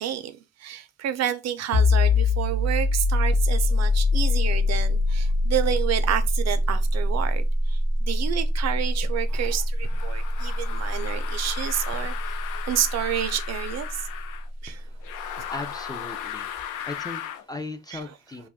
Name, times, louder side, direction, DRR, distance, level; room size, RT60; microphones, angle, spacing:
voice 1, 0.0-12.4 12.7-14.1 14.6-14.8 17.9-18.0, right 10 dB, 60° right, 0.5 m, -29 dB
sound 1, 1.7-13.2, left 2 dB, 50° left, 0.8 m, -23 dB
sound 2, 9.8-14.5 15.0-17.5, left 10 dB, 80° left, 0.5 m, -36 dB
voice 2, 14.7-18.5, left 2 dB, 15° left, 0.3 m, -39 dB
2.5 x 2.4 x 3.4 m
cardioid pair, 90°, 30 cm